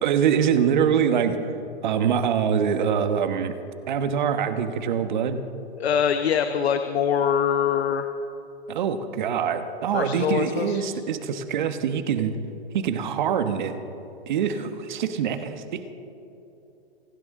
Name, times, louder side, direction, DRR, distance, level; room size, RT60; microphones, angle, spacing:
voice 1, 0.0-1.4 1.8-3.5 3.9-5.4 8.7-12.3 12.7-13.7 14.3-15.8, right 8 dB, 45° right, 9 dB, 1.2 m, -24 dB
voice 2, 5.8-8.1 9.9-10.8, left 8 dB, 75° left, 8 dB, 1.0 m, -23 dB
26.0 x 12.0 x 3.7 m, 2.9 s
hypercardioid pair, 160°, 32 cm